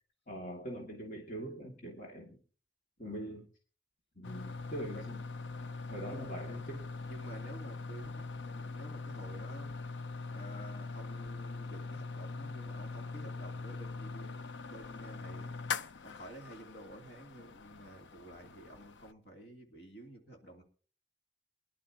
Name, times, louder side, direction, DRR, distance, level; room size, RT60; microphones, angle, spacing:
voice 1, 0.3-2.4 3.0-3.5 4.2-5.2 5.6-6.9, right 1 dB, 45° left, -1 dB, 2.4 m, -43 dB
voice 2, 3.0-3.4 4.9-5.1 6.0-6.3 7.1-9.7 10.3-15.5 16.0-20.6, right 1 dB, 65° left, 1 dB, 3.1 m, -51 dB
sound 1, 4.2-19.1, left 4 dB, 90° left, 0.6 m, -42 dB
23.5 x 11.0 x 2.9 m, 0.40 s
head